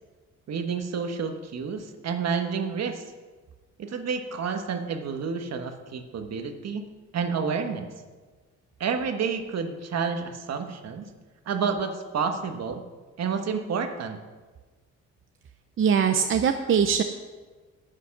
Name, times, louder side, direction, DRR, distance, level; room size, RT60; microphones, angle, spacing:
voice 1, 0.5-3.0 3.8-6.9 7.1-7.9 8.8-11.1 11.5-12.8 13.2-14.2, right 6 dB, 60° right, 6 dB, 1.3 m, -29 dB
voice 2, 15.8-17.0, right 7 dB, 45° right, 7 dB, 0.6 m, -22 dB
10.0 x 8.2 x 5.9 m, 1.3 s
cardioid pair, 90°, 30 cm